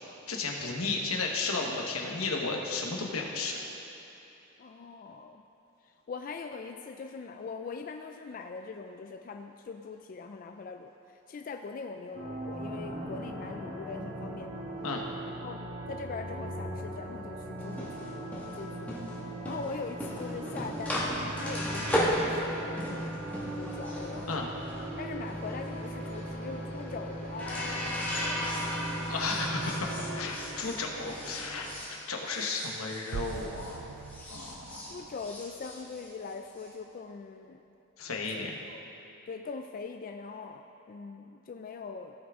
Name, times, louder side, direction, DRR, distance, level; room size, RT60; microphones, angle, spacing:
voice 1, 0.3-3.6 14.8-15.0 24.3-24.5 29.1-33.8 34.3-35.0 38.0-38.5, left 3 dB, 90° left, 0 dB, 1.2 m, -33 dB
voice 2, 4.6-5.4 5.8-14.6 15.4-18.3 18.6-19.0 19.4-23.1 23.5-24.5 25.0-28.9 34.9-37.6 38.3-38.8 39.3-42.1, left 4 dB, 40° left, 5 dB, 0.3 m, -42 dB
sound 1, 12.1-30.2, right 1 dB, 50° right, 1.7 m, -39 dB
sound 2, 17.6-33.8 34.1-36.7, equal, 5° left, 1.5 m, -36 dB
sound 3, 33.1-36.1, right 6 dB, 90° right, 0.4 m, -43 dB
16.5 x 6.0 x 3.6 m, 2.8 s
head